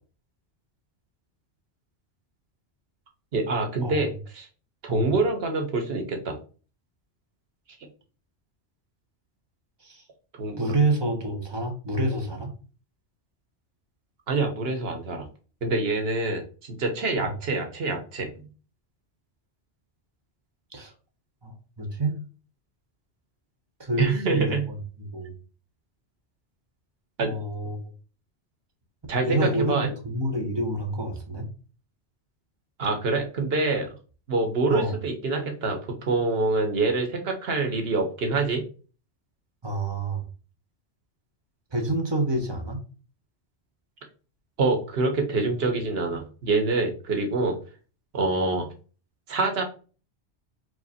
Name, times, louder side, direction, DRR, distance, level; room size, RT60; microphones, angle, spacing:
voice 1, 3.3-4.5 4.8-6.3 10.4-10.7 14.3-15.2 15.6-16.4 16.8-18.3 24.0-24.6 27.2-27.3 29.1-29.9 32.8-33.9 34.3-38.6 44.6-47.5 48.1-48.7 49.3-49.6, right 3 dB, 60° right, 4 dB, 1.2 m, -25 dB
voice 2, 10.6-12.5 17.2-17.3 20.7-20.9 21.4-22.2 23.8-25.4 27.2-27.8 29.2-31.5 34.7-35.0 39.6-40.2 41.7-42.8, right 2 dB, 25° right, 3 dB, 0.9 m, -28 dB
5.0 x 2.0 x 4.2 m, 0.37 s
omnidirectional pair, 1.2 m